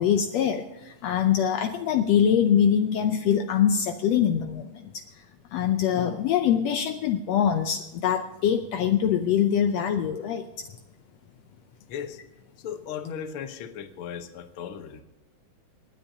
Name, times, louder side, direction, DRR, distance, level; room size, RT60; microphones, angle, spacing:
voice 1, 0.0-5.2 5.5-10.7, left 8 dB, 85° left, 6 dB, 1.4 m, -24 dB
voice 2, 11.9-12.2 12.6-15.0, left 8 dB, 65° left, 7 dB, 1.3 m, -36 dB
28.5 x 9.6 x 2.8 m, 1.0 s
omnidirectional pair, 3.8 m